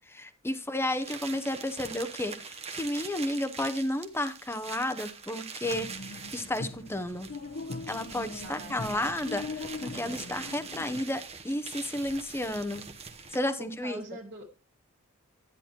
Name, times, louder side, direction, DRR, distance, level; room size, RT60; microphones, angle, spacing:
voice 1, 0.1-5.9 6.3-7.3 7.9-9.4 9.8-12.8 13.3-14.0, left 1 dB, 10° left, 10 dB, 0.7 m, -32 dB
sound 1, 1.0-13.6, right 5 dB, 30° right, 1.0 m, -43 dB
sound 2, 5.6-11.0, left 3 dB, 75° left, 1.0 m, -41 dB
voice 2, 8.4-9.2 13.6-14.5, right 2 dB, 50° right, 0 dB, 2.1 m, -44 dB
11.0 x 9.7 x 2.9 m, 0.34 s
head